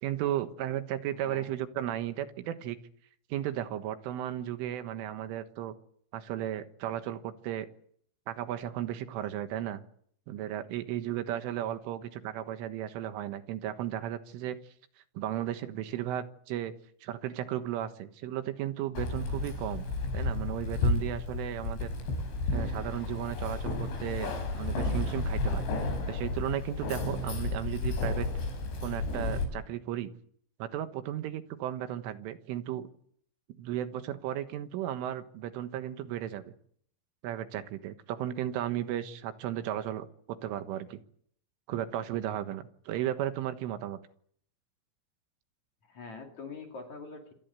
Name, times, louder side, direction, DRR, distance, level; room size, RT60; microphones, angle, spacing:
voice 1, 0.0-2.8 3.3-5.7 6.1-7.7 8.3-9.8 10.3-14.6 15.2-16.7 17.0-19.9 20.1-21.9 22.5-25.7 26.1-28.3 28.8-30.1 30.6-32.9 33.6-36.5 37.2-41.0 41.7-44.0, right 11 dB, 75° right, 10 dB, 3.8 m, -35 dB
voice 2, 1.1-1.5 45.8-47.3, left 4 dB, 45° left, 3 dB, 3.1 m, -44 dB
Keys jangling, 19.0-29.5, left 3 dB, 65° left, 7.5 m, -32 dB
27.5 x 18.5 x 8.3 m, 0.64 s
omnidirectional pair, 5.8 m